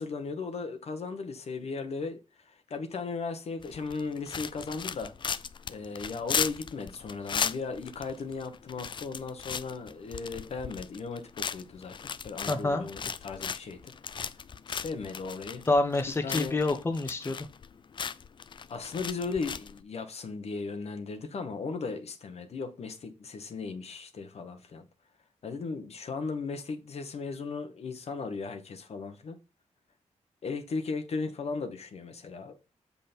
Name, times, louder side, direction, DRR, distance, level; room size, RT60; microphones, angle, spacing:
voice 1, 0.0-2.2 2.5-5.3 5.7-13.8 14.7-15.6 16.2-16.6 18.7-24.9 25.4-29.4 30.4-32.6, left 4 dB, 55° left, 1.2 m, -36 dB
sound 1, 3.6-19.8, left 6 dB, 40° left, 0.4 m, -37 dB
voice 2, 12.5-12.9 15.7-17.4, left 2 dB, 20° left, 1.0 m, -27 dB
7.3 x 5.6 x 4.3 m
wide cardioid pair, 145°, 12 cm